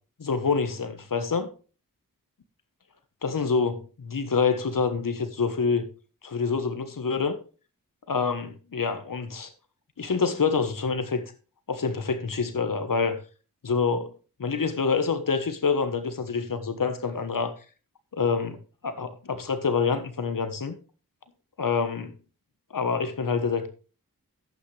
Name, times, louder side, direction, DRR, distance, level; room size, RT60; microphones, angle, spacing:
voice 1, 0.2-1.5 3.2-5.8 6.2-7.4 8.1-9.5 10.0-11.2 11.7-13.2 13.6-14.1 14.4-17.5 18.1-18.6 18.8-20.7 21.6-22.1 22.7-23.7, left 5 dB, 65° left, 1.4 m, -26 dB
11.0 x 8.6 x 3.4 m
cardioid pair, 45°, 36 cm